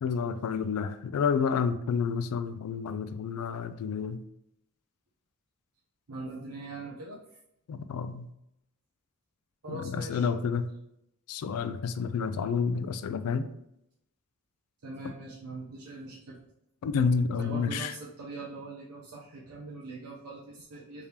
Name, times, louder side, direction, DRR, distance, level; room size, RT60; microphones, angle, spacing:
voice 1, 0.0-4.2 7.7-8.3 9.7-10.7 11.3-13.5 16.8-17.9, left 6 dB, 80° left, 11 dB, 0.3 m, -29 dB
voice 2, 6.1-7.2 9.6-10.3 14.8-16.4 17.4-21.1, right 2 dB, 80° right, -4 dB, 0.6 m, -41 dB
3.5 x 3.3 x 2.8 m, 0.81 s
head